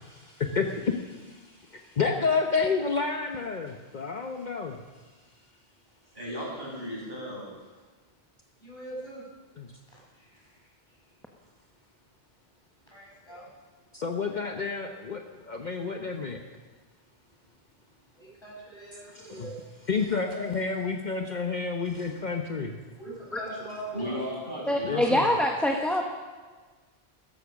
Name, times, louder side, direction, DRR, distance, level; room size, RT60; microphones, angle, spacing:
voice 1, 0.1-4.8 9.6-9.7 13.9-16.4 19.1-19.5 19.9-22.8 24.8-25.3, left 5 dB, 50° left, 4 dB, 1.0 m, -30 dB
voice 2, 6.1-7.5 23.9-25.1, equal, 50° right, -5 dB, 6.9 m, -35 dB
voice 3, 8.6-9.2 9.9-10.6 10.9-11.0 12.9-13.5 18.1-19.6 23.0-24.2, right 1 dB, 25° left, -5 dB, 6.3 m, -42 dB
voice 4, 24.7-26.0, left 1 dB, ahead, 2 dB, 1.1 m, -24 dB
16.0 x 14.0 x 6.3 m, 1.4 s
omnidirectional pair, 1.0 m